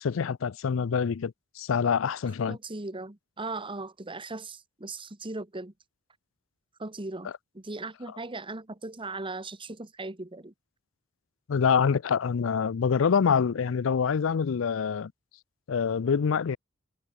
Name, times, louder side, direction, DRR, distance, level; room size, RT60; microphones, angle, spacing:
voice 1, 0.0-2.6 7.2-7.3 11.5-15.1 15.7-16.6, left 6 dB, 75° left, 0.4 m, -26 dB
voice 2, 2.5-5.7 6.8-10.5, right 2 dB, 25° right, 1.6 m, -38 dB
head